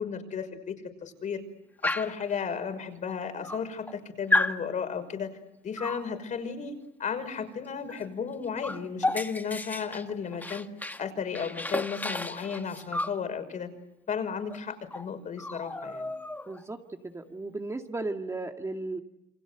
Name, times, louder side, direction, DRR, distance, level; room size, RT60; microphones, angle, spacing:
voice 1, 0.0-1.4 1.8-5.4 5.6-10.7 11.0-13.7 14.1-16.1, left 6 dB, 45° left, 8 dB, 5.7 m, -34 dB
Dog, 1.8-2.2 3.1-3.2 3.4-4.0 4.3-4.6 5.8-6.1 7.9-8.1 8.3-11.0 11.3-13.2 14.5-14.6 14.9-15.1 15.4-16.6, left 2 dB, 10° left, 1.5 m, -32 dB
voice 2, 16.5-16.8 17.0-19.0, right 2 dB, 15° right, 4 dB, 2.1 m, -35 dB
28.5 x 25.5 x 8.1 m, 0.86 s
cardioid pair, 110°, 17 cm